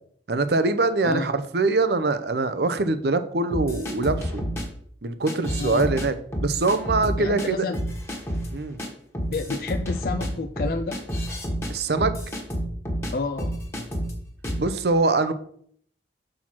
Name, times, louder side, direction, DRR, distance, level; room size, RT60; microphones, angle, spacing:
voice 1, 0.3-4.4 5.0-6.1 6.4-7.7 8.5-8.8 11.7-12.1 14.6-15.3, right 3 dB, 60° right, 11 dB, 0.6 m, -23 dB
sound 1, 3.5-4.6 5.3-6.1 6.3-7.5 7.7-8.5 8.8-8.9 9.1-13.1 13.4-14.1 14.4-14.7, equal, 15° left, 1.4 m, -29 dB
voice 2, 7.2-7.8 9.3-11.0 13.1-13.9, left 3 dB, 55° left, 6 dB, 0.4 m, -30 dB
6.3 x 4.5 x 5.9 m, 0.63 s
head